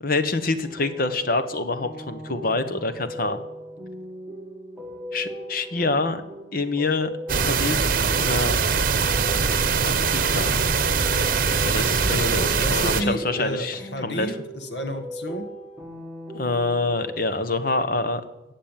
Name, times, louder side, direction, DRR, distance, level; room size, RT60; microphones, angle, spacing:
voice 1, 0.0-3.4 5.1-6.2 6.5-7.1 7.4-7.9 8.2-8.6 9.8-10.6 11.6-14.3 16.3-18.2, left 3 dB, 55° left, 10 dB, 1.2 m, -26 dB
sound 1, 0.6-17.3, equal, 5° right, 2.1 m, -38 dB
sound 2, 7.3-13.0, right 5 dB, 50° right, 1.1 m, -22 dB
voice 2, 12.1-15.5, equal, 70° left, 7 dB, 1.6 m, -31 dB
16.0 x 7.5 x 9.1 m, 0.92 s
head